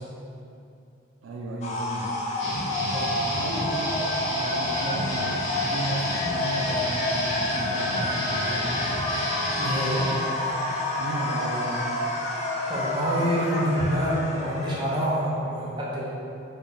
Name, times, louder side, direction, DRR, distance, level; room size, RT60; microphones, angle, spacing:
voice 1, 1.2-2.2 2.9-9.0 11.0-11.9, right 2 dB, 75° right, -1 dB, 0.4 m, -35 dB
sound 1, 1.6-15.2, left 2 dB, 35° left, 0.3 m, -29 dB
sound 2, 2.4-10.1, equal, 65° left, 0.8 m, -31 dB
voice 2, 9.6-10.1 12.7-16.1, equal, 25° right, -6 dB, 0.6 m, -26 dB
3.1 x 2.2 x 3.8 m, 2.6 s
head